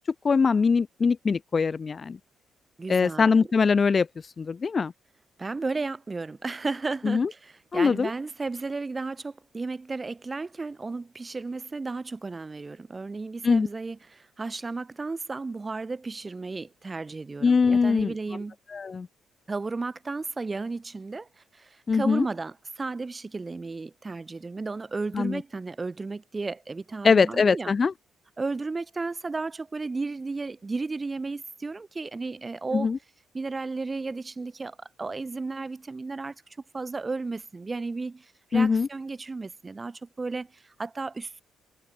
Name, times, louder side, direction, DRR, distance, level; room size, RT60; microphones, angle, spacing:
voice 1, 0.2-2.2 2.9-4.1 4.4-4.9 7.0-7.3 7.7-8.1 13.4-13.7 17.4-18.1 18.7-19.1 21.9-22.3 25.1-25.4 27.0-27.9 32.7-33.0 38.5-38.9, left 5 dB, 35° left, 1.8 m, -22 dB
voice 2, 2.8-3.5 5.4-18.6 19.5-27.7 28.4-32.9 33.3-36.4 36.7-41.4, right 3 dB, 25° right, 5.8 m, -34 dB
cardioid pair, 90°, 0 cm